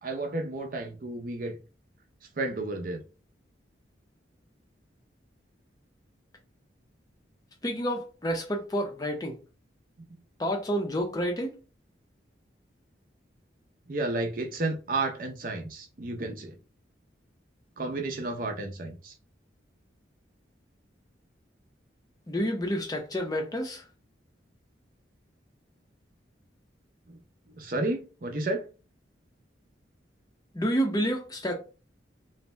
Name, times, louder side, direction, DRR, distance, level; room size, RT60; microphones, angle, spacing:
voice 1, 0.0-1.6 2.4-3.0 13.9-16.5 17.8-19.1 27.6-28.7, right 2 dB, 45° right, 0.5 m, -32 dB
voice 2, 7.6-9.4 10.4-11.5 22.3-23.8 30.5-31.5, equal, 20° left, 0.5 m, -29 dB
2.6 x 2.1 x 3.2 m
head